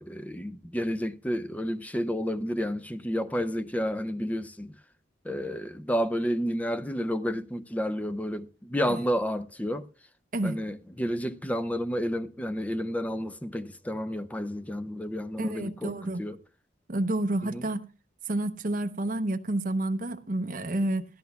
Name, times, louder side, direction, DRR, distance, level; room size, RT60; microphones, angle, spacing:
voice 1, 0.0-4.7 5.2-9.9 10.4-16.4 17.5-17.6, equal, 10° left, 0.5 m, -31 dB
voice 2, 15.4-16.2 16.9-17.8 18.3-21.1, right 1 dB, 45° right, 0.7 m, -29 dB
16.5 x 13.0 x 2.3 m
head